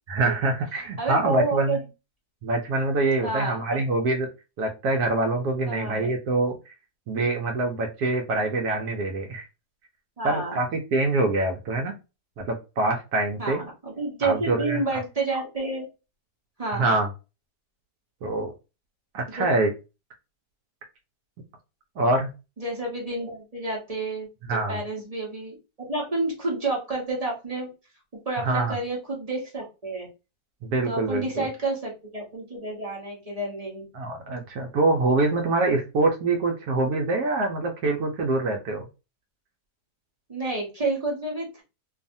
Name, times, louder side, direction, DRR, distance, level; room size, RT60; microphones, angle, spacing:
voice 1, 0.1-1.8 2.4-4.3 4.6-6.7 7.1-9.4 10.2-11.9 12.4-13.6 14.2-14.8 16.7-17.1 18.2-18.5 19.1-19.7 22.0-22.3 24.5-24.8 28.4-28.8 30.6-31.5 33.9-38.9, right 2 dB, 75° right, 2 dB, 1.1 m, -25 dB
voice 2, 1.0-1.8 3.2-3.8 5.6-6.1 10.2-10.6 13.4-15.8 16.6-17.0 19.4-19.5 22.6-27.7 28.3-30.1 30.9-33.8 40.3-41.6, right 3 dB, 30° right, -3 dB, 0.8 m, -30 dB
2.6 x 2.4 x 2.5 m, 0.28 s
omnidirectional pair, 1.7 m